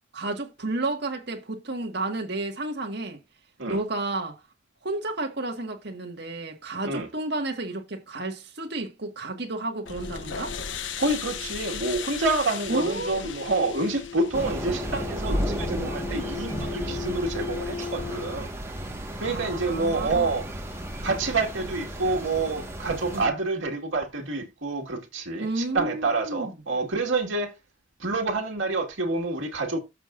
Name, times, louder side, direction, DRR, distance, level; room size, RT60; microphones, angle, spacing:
voice 1, 0.1-3.2 3.7-4.4 4.8-10.5 12.7-13.3 19.2-20.3 23.1-23.3 25.4-26.5, right 2 dB, 55° right, 1.7 m, -31 dB
sound 1, 9.9-18.4, left 6 dB, 75° left, 0.9 m, -36 dB
voice 2, 11.0-18.5 19.2-20.5 21.0-27.5 28.0-29.8, right 3 dB, 85° right, 1.9 m, -28 dB
Thunder / Rain, 14.3-23.3, equal, 15° right, 1.5 m, -33 dB
13.5 x 6.0 x 2.5 m
head